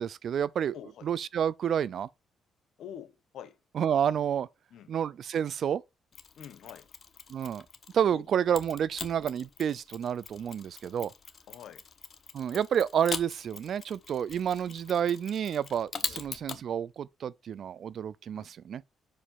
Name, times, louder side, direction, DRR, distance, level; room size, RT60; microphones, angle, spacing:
voice 1, 0.0-0.8 1.0-2.1 3.7-4.5 4.9-5.8 7.3-7.6 7.9-11.1 12.3-18.8, right 8 dB, 60° right, 0.4 m, -29 dB
voice 2, 0.7-1.1 2.8-3.6 4.7-4.9 6.3-6.9 8.1-8.3 11.5-11.9 16.1-16.2 18.3-18.5, left 9 dB, 75° left, 1.0 m, -46 dB
Mechanisms, 6.1-8.0 8.5-16.6, left 6 dB, 45° left, 0.9 m, -42 dB
5.4 x 5.1 x 5.3 m
cardioid pair, 90°, 0 cm